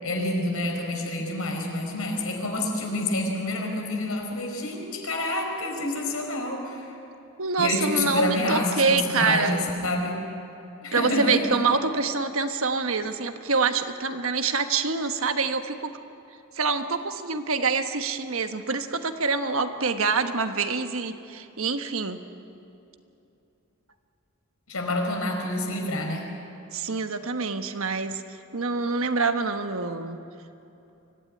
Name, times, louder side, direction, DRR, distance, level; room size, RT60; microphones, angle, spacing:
voice 1, 0.0-6.8 7.6-10.2 10.8-11.6 24.7-26.3, left 1 dB, 80° left, 2 dB, 4.7 m, -28 dB
voice 2, 7.4-9.7 10.9-15.9 16.5-22.2 26.7-28.2 28.5-30.2, right 4 dB, 75° right, 8 dB, 1.3 m, -26 dB
25.0 x 15.5 x 9.7 m, 2.8 s
head